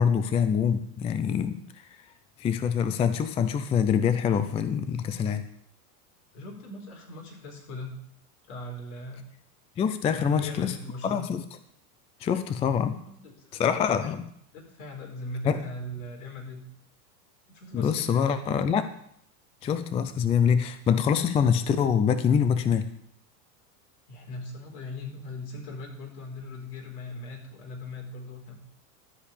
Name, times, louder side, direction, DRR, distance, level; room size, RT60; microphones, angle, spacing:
voice 1, 0.0-1.9 2.4-5.5 9.8-10.7 11.0-11.4 12.2-13.0 13.5-14.2 15.4-15.6 17.7-18.8 19.6-22.8, left 7 dB, 15° left, 11 dB, 0.4 m, -25 dB
voice 2, 6.3-8.0 8.5-9.2 10.1-11.3 13.1-14.1 14.5-16.6 17.5-18.5 24.1-28.6, left 2 dB, 65° left, 0 dB, 4.6 m, -40 dB
13.0 x 5.1 x 8.4 m, 0.70 s
supercardioid pair, 120°, 46 cm